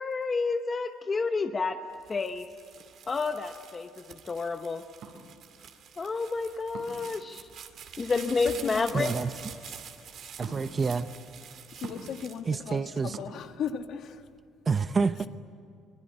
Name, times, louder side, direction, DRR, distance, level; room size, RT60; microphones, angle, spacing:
voice 1, 0.0-1.8 2.1-2.5 3.1-4.8 6.0-7.5 8.0-9.1, left 4 dB, 25° left, 7 dB, 0.8 m, -30 dB
sound 1, 1.9-13.3 13.8-14.4, right 8 dB, 50° right, 2.4 m, -47 dB
sound 2, 5.0-5.2 6.7-7.1 8.9-9.1 10.4-10.6 11.8-12.2 13.1-13.3, right 6 dB, 65° right, 4.2 m, -41 dB
voice 2, 8.9-9.3 10.4-11.1 12.4-13.2 14.7-15.3, right 4 dB, 25° right, 12 dB, 0.7 m, -28 dB
voice 3, 11.7-14.2, left 7 dB, 55° left, 7 dB, 1.6 m, -36 dB
26.0 x 22.0 x 10.0 m, 2.5 s
cardioid pair, 140°, 0 cm